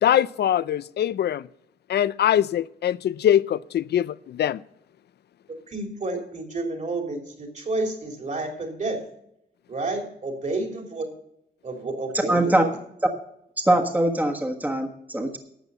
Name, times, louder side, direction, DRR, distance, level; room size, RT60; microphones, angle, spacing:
voice 1, 0.0-1.5 1.9-4.6, left 10 dB, 75° left, 0.4 m, -22 dB
voice 2, 5.7-9.0 9.7-11.1 11.6-12.7, right 2 dB, 45° right, 3.4 m, -30 dB
voice 3, 12.1-12.6 13.6-15.4, right 1 dB, 10° right, 1.4 m, -22 dB
12.5 x 8.1 x 5.5 m
wide cardioid pair, 110°, 17 cm